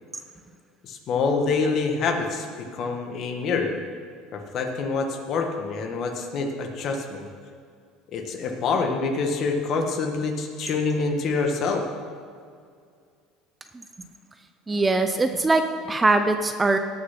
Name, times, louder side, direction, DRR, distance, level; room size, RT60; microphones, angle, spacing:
voice 1, 0.8-3.8 4.3-7.2 8.1-11.9, left 4 dB, 45° left, 4 dB, 1.5 m, -26 dB
voice 2, 14.7-16.8, right 2 dB, 15° right, 7 dB, 0.6 m, -22 dB
18.0 x 6.8 x 5.8 m, 2.2 s
cardioid pair, 145°, 0 cm